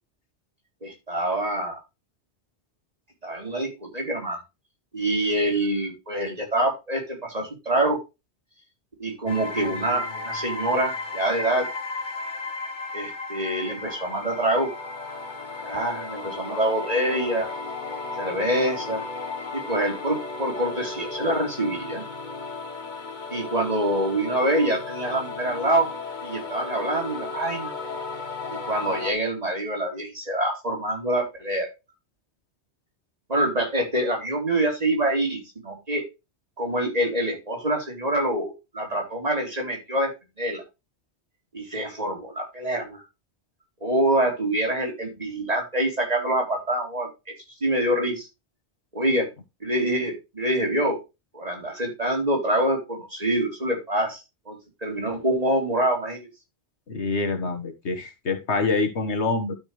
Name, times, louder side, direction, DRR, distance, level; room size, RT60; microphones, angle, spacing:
voice 1, 0.8-1.8 3.2-4.4 4.9-8.0 9.0-11.7 12.9-14.7 15.6-17.5 18.2-19.0 19.5-22.0 23.3-25.9 26.2-27.7 28.7-31.7 33.3-36.0 36.6-40.1 40.4-40.6 41.5-43.0 43.8-47.3 47.6-48.3 48.9-49.3 49.6-51.0 51.3-56.3, right 1 dB, 35° right, 1 dB, 3.9 m, -25 dB
sound 1, 9.3-29.1, left 3 dB, 45° left, 1.4 m, -34 dB
voice 2, 56.9-59.5, left 3 dB, 80° left, 6 dB, 1.8 m, -26 dB
12.5 x 5.8 x 3.3 m, 0.25 s
omnidirectional pair, 1.1 m